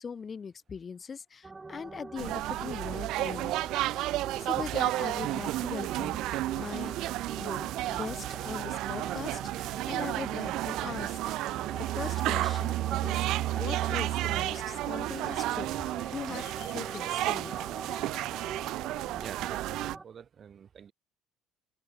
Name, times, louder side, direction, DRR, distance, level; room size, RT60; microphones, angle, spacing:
voice 1, 0.0-3.5 3.8-4.1 4.4-16.4 16.7-17.6, left 6 dB, 35° left, 1.5 m, -41 dB
sound 1, 1.4-20.0, right 3 dB, 20° right, 2.0 m, -44 dB
sound 2, 2.2-20.0, right 16 dB, 70° right, 0.3 m, -32 dB
sound 3, 13.1-18.8, left 22 dB, 80° left, 1.3 m, -58 dB
voice 2, 19.1-20.9, right 7 dB, 45° right, 1.8 m, -47 dB
open air
supercardioid pair, 85°, 0 cm